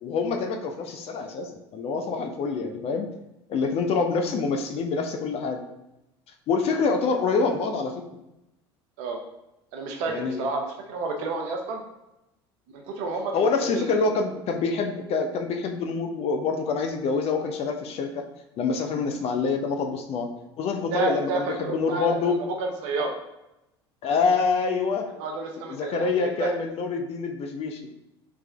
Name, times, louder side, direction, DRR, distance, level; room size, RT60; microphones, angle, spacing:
voice 1, 0.0-3.1 3.5-5.6 6.5-8.0 10.1-10.5 13.3-18.2 18.6-20.3 20.6-22.4 24.0-25.1 25.7-27.9, left 4 dB, 50° left, 4 dB, 0.6 m, -26 dB
voice 2, 9.7-11.8 12.7-14.1 20.9-22.3 22.6-23.1 25.2-26.5, right 3 dB, 65° right, 2 dB, 0.7 m, -30 dB
3.4 x 3.2 x 3.4 m, 0.90 s
hypercardioid pair, 70°, 13 cm